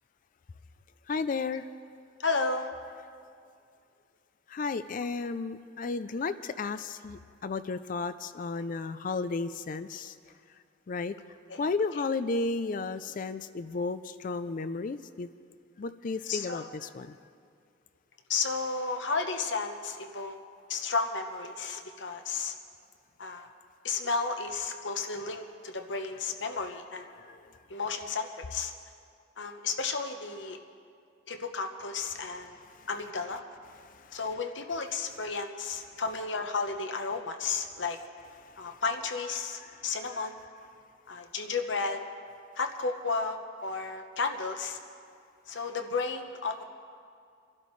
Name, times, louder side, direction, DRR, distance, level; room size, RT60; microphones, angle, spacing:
voice 1, 1.1-1.6 4.5-10.1 10.9-11.1 11.6-15.3 15.8-17.2 27.1-27.4 32.8-32.9 39.6-39.7, left 4 dB, 45° left, 13 dB, 0.4 m, -33 dB
voice 2, 2.2-2.7 11.5-11.6 16.2-16.7 18.3-20.4 20.7-22.6 23.2-23.5 23.8-27.1 27.7-28.7 29.4-30.6 31.3-32.6 32.9-33.4 34.1-38.0 38.6-40.4 41.1-42.0 42.6-44.8 45.5-46.6, left 4 dB, 65° left, 5 dB, 1.0 m, -33 dB
25.0 x 12.0 x 3.2 m, 2.3 s
head